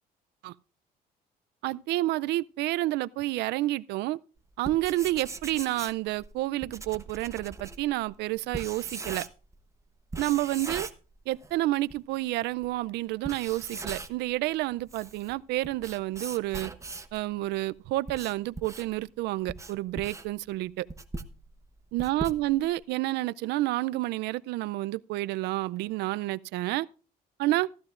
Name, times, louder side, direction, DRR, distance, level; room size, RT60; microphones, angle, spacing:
voice 1, 1.6-4.2 4.6-9.3 10.2-10.9 11.3-16.7 17.1-20.9 21.9-26.9 27.4-27.7, right 17 dB, 80° right, 0.5 m, -29 dB
Writing, 4.5-9.6 10.1-11.6 11.9-12.0 12.6-12.7 13.1-14.3 14.7-17.2 17.8-22.8, right 3 dB, 15° right, 1.0 m, -40 dB
15.0 x 13.5 x 2.5 m
cardioid pair, 110°, 17 cm